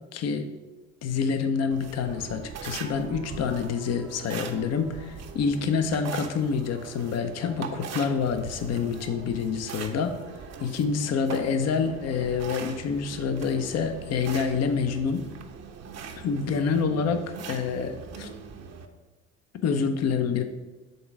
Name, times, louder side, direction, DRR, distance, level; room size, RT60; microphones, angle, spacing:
voice 1, 0.1-0.5 1.0-10.2 10.6-15.2 16.2-18.3 19.6-20.4, left 5 dB, 45° left, 8 dB, 0.7 m, -27 dB
sound 1, 1.7-18.9, right 6 dB, 45° right, 0.8 m, -41 dB
5.4 x 3.9 x 5.9 m, 1.2 s
hypercardioid pair, 60°, 36 cm